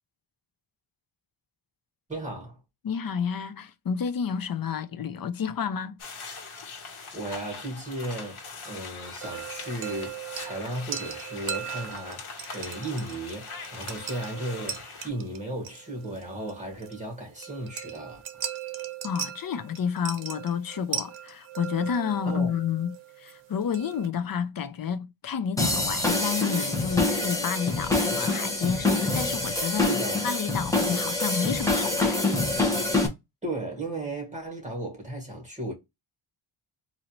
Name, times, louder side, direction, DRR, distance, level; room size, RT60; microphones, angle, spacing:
voice 1, 2.1-2.6 7.1-18.2 22.3-22.5 29.8-30.2 33.4-35.7, right 1 dB, 15° right, 2.0 m, -35 dB
voice 2, 2.8-6.0 19.0-30.0 30.2-32.2, left 7 dB, 45° left, 0.6 m, -30 dB
sound 1, 6.0-15.1, left 4 dB, 80° left, 1.4 m, -42 dB
sound 2, 9.2-24.1, right 9 dB, 70° right, 0.8 m, -39 dB
sound 3, 25.6-33.1, left 2 dB, 5° left, 1.1 m, -26 dB
4.0 x 2.7 x 3.0 m
wide cardioid pair, 95°, 49 cm